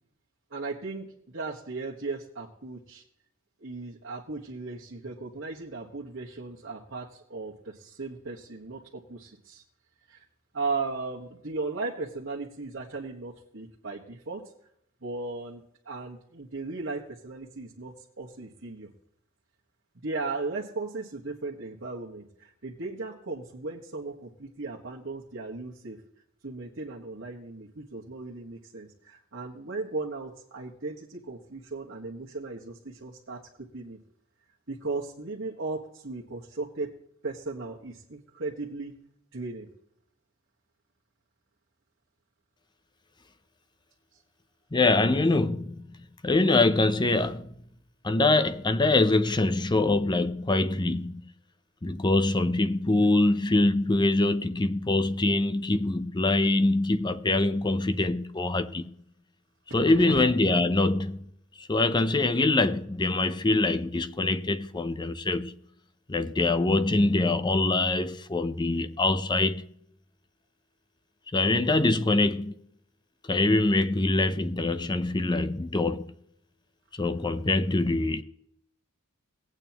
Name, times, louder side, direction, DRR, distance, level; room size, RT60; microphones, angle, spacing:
voice 1, 0.5-3.0 3.6-9.6 10.1-10.2 10.5-14.4 15.0-18.9 20.0-26.0 26.4-34.0 34.7-36.9 37.2-38.9 39.3-39.7 59.8-60.2, right 3 dB, 60° right, 1.5 m, -36 dB
voice 2, 44.7-46.0 46.2-47.5 48.0-51.2 51.8-58.9 59.7-61.3 61.6-65.5 66.1-69.6 71.3-72.5 73.2-76.1 76.9-78.2, left 2 dB, 20° left, 0.6 m, -24 dB
18.5 x 8.9 x 3.0 m
head